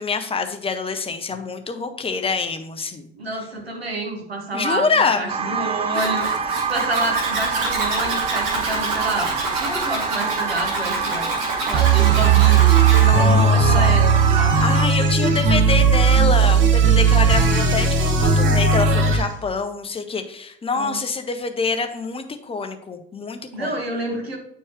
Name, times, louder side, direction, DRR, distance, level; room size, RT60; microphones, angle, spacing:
voice 1, 0.0-3.1 4.5-5.2 13.0-13.9 14.6-23.8, left 4 dB, 20° left, 7 dB, 0.8 m, -25 dB
voice 2, 3.2-4.9 5.1-11.3 11.6-12.7 13.1-14.0 14.3-14.6 17.0-17.1 20.7-21.0 23.5-24.4, right 2 dB, 85° right, 1 dB, 1.0 m, -28 dB
sound 1, 5.3-14.9, right 6 dB, 20° right, 0.5 m, -26 dB
Zipper (clothing), 5.9-13.1, right 1 dB, 65° right, 1.9 m, -28 dB
sound 2, 11.7-19.3, right 5 dB, 40° right, 1.0 m, -16 dB
9.1 x 4.5 x 3.1 m, 0.71 s
figure-of-eight pair, 60°, 30 cm